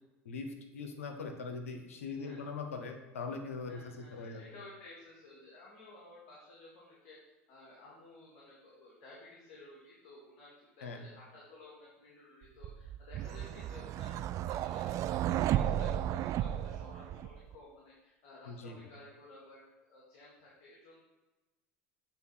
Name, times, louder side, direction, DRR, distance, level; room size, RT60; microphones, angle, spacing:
voice 1, 0.2-4.4 10.8-11.1 18.5-18.8, left 4 dB, 90° left, 5 dB, 1.0 m, -41 dB
voice 2, 2.1-2.5 3.7-21.0, left 2 dB, 60° left, -4 dB, 2.2 m, -55 dB
sound 1, 12.6-17.6, right 11 dB, 50° right, 0.3 m, -34 dB
8.2 x 4.1 x 6.1 m, 1.1 s
hypercardioid pair, 85°, 7 cm